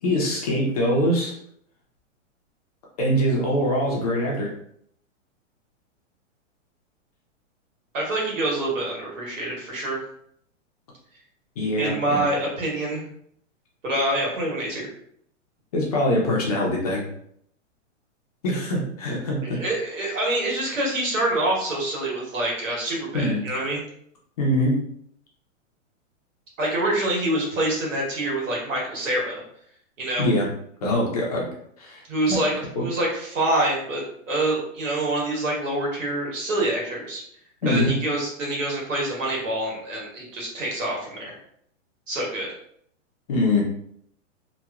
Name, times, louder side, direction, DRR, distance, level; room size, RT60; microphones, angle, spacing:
voice 1, 0.0-1.3 3.0-4.5 11.6-12.2 15.7-17.0 18.4-19.6 23.1-23.4 24.4-24.8 30.2-30.5 30.8-31.5 31.8-32.0 32.3-32.4 32.8-32.9 37.6-37.9 43.3-43.6, left 1 dB, 30° left, -3 dB, 0.5 m, -23 dB
voice 2, 7.9-10.0 11.8-13.0 13.8-14.8 19.4-23.8 26.6-29.4 30.0-30.3 32.1-32.5 32.8-37.2 37.6-41.3 42.1-42.5, right 1 dB, 85° right, -3 dB, 1.5 m, -26 dB
2.9 x 2.2 x 2.3 m, 0.68 s
hypercardioid pair, 165°, 38 cm